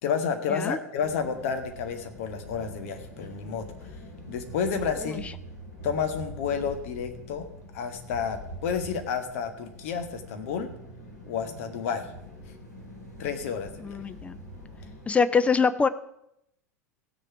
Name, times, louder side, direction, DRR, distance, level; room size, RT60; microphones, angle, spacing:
voice 1, 0.0-3.7 4.3-5.2 5.8-7.4 7.7-10.7 11.3-12.1 13.2-13.9, left 6 dB, 55° left, 7 dB, 1.5 m, -30 dB
sound 1, 1.0-15.1, equal, 85° left, 3.0 m, -44 dB
voice 2, 13.8-14.4 15.1-15.9, left 5 dB, 15° left, 12 dB, 0.6 m, -24 dB
16.5 x 6.6 x 4.8 m, 0.79 s
figure-of-eight pair, 80°, 9 cm